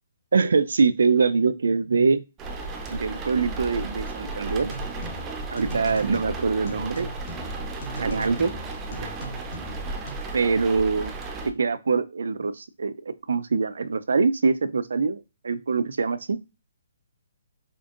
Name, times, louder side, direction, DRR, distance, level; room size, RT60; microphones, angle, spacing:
voice 1, 0.3-2.2 2.9-4.7 5.5-7.1 8.0-8.5 9.0-9.1 10.3-11.1 11.4-16.4, right 4 dB, 80° right, 13 dB, 0.4 m, -23 dB
sound 1, 2.4-11.5, right 3 dB, 15° right, 0.5 m, -34 dB
sound 2, 4.6-10.1, equal, 45° left, 1.4 m, -39 dB
5.1 x 2.5 x 2.5 m, 0.27 s
hypercardioid pair, 160°, 0 cm